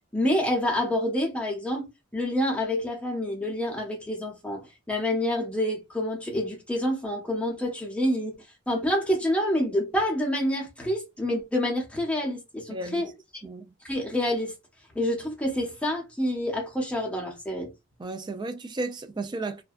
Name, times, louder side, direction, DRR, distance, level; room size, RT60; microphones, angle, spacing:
voice 1, 0.1-8.3 8.7-13.1 13.8-14.5 14.9-17.7, left 1 dB, 5° left, 0.7 m, -27 dB
voice 2, 12.7-13.0 13.4-13.7 18.0-19.6, right 2 dB, 20° right, 0.3 m, -34 dB
2.5 x 2.2 x 2.4 m
head